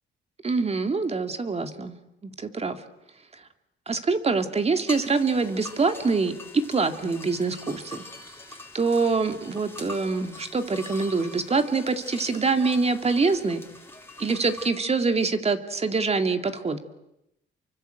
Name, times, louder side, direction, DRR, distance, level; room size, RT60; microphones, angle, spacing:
voice 1, 0.4-2.0 2.2-2.8 3.9-8.0 8.7-13.6 14.2-16.8, right 4 dB, 30° right, 8 dB, 2.5 m, -25 dB
goat-bells, 4.9-14.7, left 2 dB, 10° left, 4.3 m, -44 dB
29.0 x 24.0 x 7.9 m, 0.85 s
cardioid pair, 90°, 20 cm